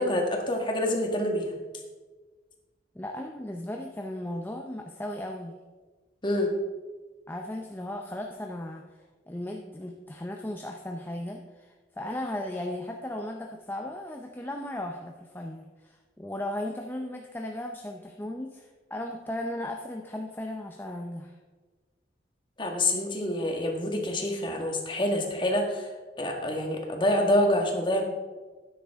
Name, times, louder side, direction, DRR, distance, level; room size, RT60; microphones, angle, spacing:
voice 1, 0.0-1.5 6.2-6.5 22.6-25.8 26.2-28.0, left 1 dB, 25° left, 2 dB, 1.6 m, -26 dB
voice 2, 2.9-5.6 7.3-8.9 9.3-21.4, left 1 dB, 10° left, 2 dB, 0.6 m, -36 dB
12.5 x 9.8 x 3.6 m, 1.3 s
head